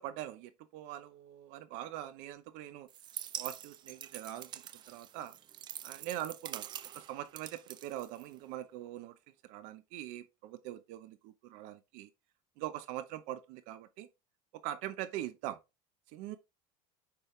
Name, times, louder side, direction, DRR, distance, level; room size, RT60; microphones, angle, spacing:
voice 1, 0.0-2.9 3.4-5.4 5.8-9.2 9.4-12.1 12.6-14.1 14.5-15.6 16.1-16.4, right 13 dB, 70° right, 0.8 m, -43 dB
sound 1, 2.9-8.6, right 10 dB, 35° right, 0.5 m, -45 dB
6.8 x 5.3 x 3.2 m
cardioid pair, 155°, 14 cm